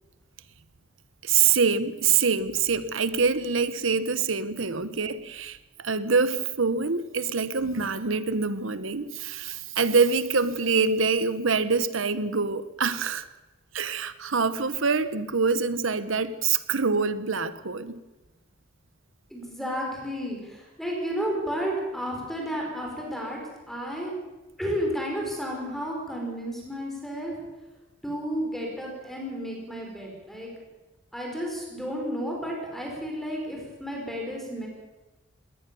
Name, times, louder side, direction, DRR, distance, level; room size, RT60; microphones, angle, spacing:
voice 1, 1.2-13.3 13.7-18.0, right 5 dB, 85° right, 13 dB, 1.1 m, -25 dB
voice 2, 19.3-23.4 23.7-24.1 24.6-27.4 28.0-30.5 31.1-34.7, equal, ahead, -1 dB, 5.2 m, -32 dB
21.0 x 18.5 x 7.0 m, 1.1 s
head